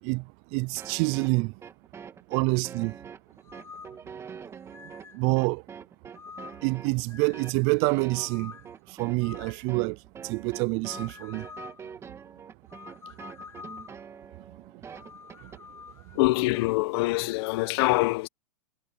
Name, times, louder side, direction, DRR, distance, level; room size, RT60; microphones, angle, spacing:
voice 1, 0.0-1.5 2.3-3.0 5.1-5.6 6.6-8.6 8.9-11.5 14.5-14.8 15.4-15.5 16.1-16.2, right 29 dB, 35° right, 0.4 m, -27 dB
sound 1, 0.8-15.6, right 7 dB, 15° right, 2.2 m, -44 dB
sound 2, 3.4-4.0 4.7-5.2 6.1-6.7 7.1-7.6 8.1-8.7 9.2-9.6 10.8-11.8 12.7-14.0 14.9-16.8, left 6 dB, 15° left, 4.3 m, -46 dB
voice 2, 16.1-18.3, left 20 dB, 50° left, 1.1 m, -24 dB
hypercardioid pair, 145°, 17 cm